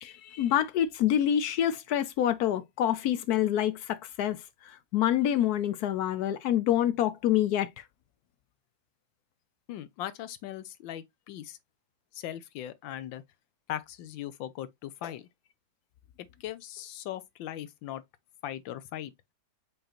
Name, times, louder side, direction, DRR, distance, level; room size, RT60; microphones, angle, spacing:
voice 1, 0.0-4.4 4.9-7.7, left 11 dB, 70° left, 0.9 m, -26 dB
voice 2, 9.7-11.6 12.1-13.2 13.7-15.3 16.4-18.0 18.4-19.1, left 12 dB, 90° left, 1.4 m, -39 dB
5.2 x 3.6 x 2.8 m
omnidirectional pair, 2.0 m